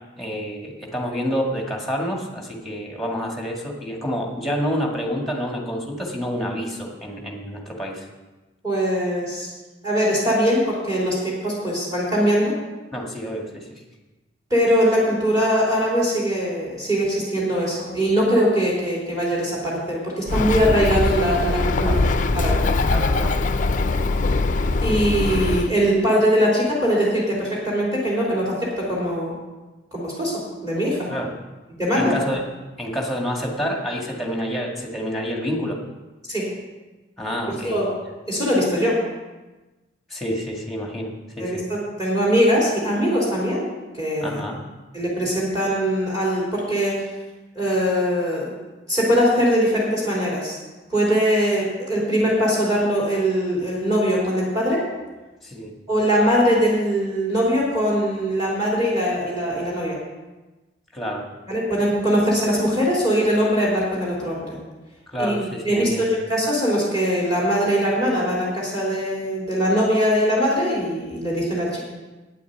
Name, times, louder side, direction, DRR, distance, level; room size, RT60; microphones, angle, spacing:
voice 1, 0.2-8.1 12.9-13.8 21.7-22.1 22.9-23.4 31.1-31.3 32.0-32.5 32.8-35.8 37.2-37.8 40.1-41.6 44.2-44.6 55.4-55.7 60.9-61.3 65.1-66.1, equal, ahead, 0 dB, 2.0 m, -28 dB
voice 2, 8.6-9.5 9.8-12.5 14.5-22.0 22.3-22.6 24.8-29.3 29.9-31.1 31.8-32.2 36.3-36.5 37.5-37.9 38.3-39.0 41.4-43.7 43.9-44.4 44.9-47.0 47.5-48.5 48.9-50.6 50.9-54.8 55.9-60.0 61.5-64.6 65.2-65.3 65.6-71.8, equal, 20° right, -5 dB, 3.3 m, -21 dB
Bird, 20.3-25.7, left 3 dB, 45° left, 0.5 m, -21 dB
9.5 x 8.3 x 8.0 m, 1.2 s
head